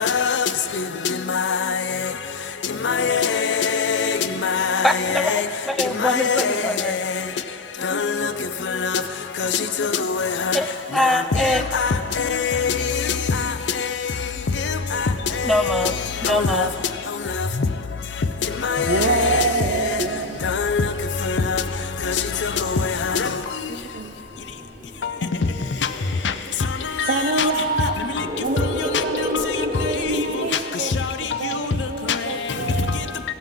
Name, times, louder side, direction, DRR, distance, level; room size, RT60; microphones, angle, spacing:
voice 1, 2.8-3.3 3.6-4.0 4.4-4.8 5.3-5.4 6.1-6.5 10.5-10.6 11.8-11.9 12.5-12.7 16.6-16.7 18.8-18.9 20.7-20.8, left 6 dB, 80° left, 0.5 m, -21 dB
voice 2, 4.8-7.0 10.5-10.7 10.9-11.6 15.4-15.9 16.2-16.7, equal, ahead, 0.3 m, -23 dB
voice 3, 18.7-20.4 23.7-24.1 26.5-26.6 27.0-28.0 28.4-30.9 31.2-33.2, right 3 dB, 55° right, 0.5 m, -26 dB
sound 1, 19.6-30.5, equal, 40° right, 1.1 m, -34 dB
17.5 x 7.5 x 3.7 m
head